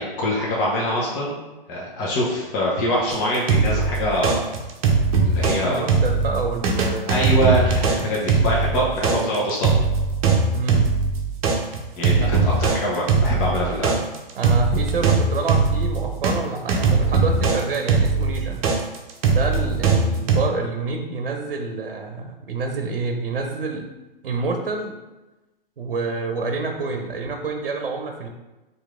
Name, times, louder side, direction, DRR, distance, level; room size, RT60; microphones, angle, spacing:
voice 1, 0.0-1.4 1.7-4.4 5.2-5.9 7.1-9.8 12.0-13.9, equal, 30° left, -4 dB, 1.0 m, -24 dB
sound 1, 3.1-5.6 5.9-16.3 16.7-20.4, right 4 dB, 40° right, 0.8 m, -20 dB
voice 2, 5.6-7.2 8.0-8.2 8.7-9.3 10.5-10.9 12.2-12.3 14.4-18.6 19.2-23.9 24.2-24.9 25.8-28.3, right 4 dB, 70° right, 4 dB, 0.7 m, -28 dB
4.6 x 2.7 x 3.6 m, 1.1 s
figure-of-eight pair, 115°, 29 cm